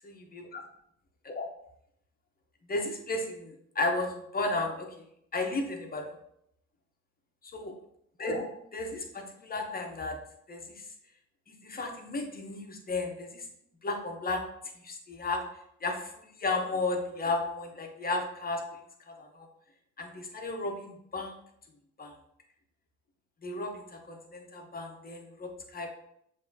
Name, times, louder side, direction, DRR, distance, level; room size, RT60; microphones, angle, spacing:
voice 1, 2.7-4.9 5.3-6.2 7.5-7.7 8.2-10.2 10.5-10.7 11.6-13.4 13.8-14.4 14.8-15.4 15.8-16.1 16.4-18.6 19.1-19.5 20.0-21.3 22.0-22.1 23.4-25.9, left 2 dB, 30° left, 3 dB, 0.9 m, -33 dB
6.9 x 2.8 x 2.8 m, 0.73 s
cardioid pair, 90°, 30 cm